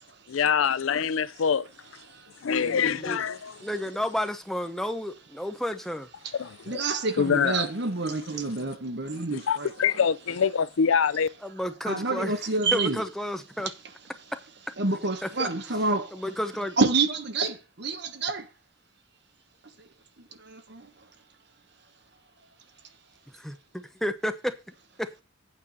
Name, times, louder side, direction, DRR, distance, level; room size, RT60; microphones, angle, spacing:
voice 1, 0.3-1.7 2.4-3.7 6.3-6.8 7.2-7.7 8.3-8.4 9.1-11.3, left 7 dB, 80° left, 0.5 m, -25 dB
voice 2, 2.5-3.2 3.6-6.1 11.4-12.4 12.7-13.7 15.2-15.5 16.1-16.8 23.4-24.5 25.0-25.1, equal, ahead, 0.8 m, -31 dB
voice 3, 6.7-9.7 11.9-13.0 14.8-16.1 16.8-18.4 20.7-20.8, right 3 dB, 55° right, 1.2 m, -27 dB
8.7 x 4.7 x 7.0 m
head